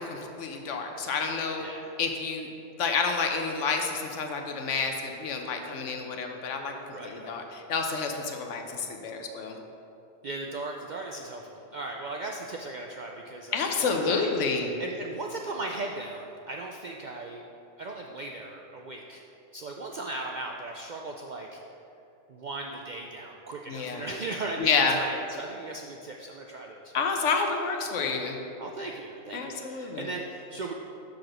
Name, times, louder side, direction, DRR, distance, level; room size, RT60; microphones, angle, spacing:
voice 1, 0.0-1.7 2.0-2.5 2.8-6.7 7.0-9.6 13.5-14.7 23.7-24.0 24.6-25.0 26.9-28.4 29.3-30.1, left 5 dB, 80° left, 4 dB, 1.1 m, -29 dB
voice 2, 1.6-1.9 6.9-7.4 10.2-17.4 17.8-19.2 19.5-21.6 22.3-26.9 28.0-28.2 28.6-30.7, right 2 dB, 65° right, 1 dB, 0.4 m, -37 dB
5.9 x 5.0 x 6.2 m, 2.7 s
omnidirectional pair, 1.3 m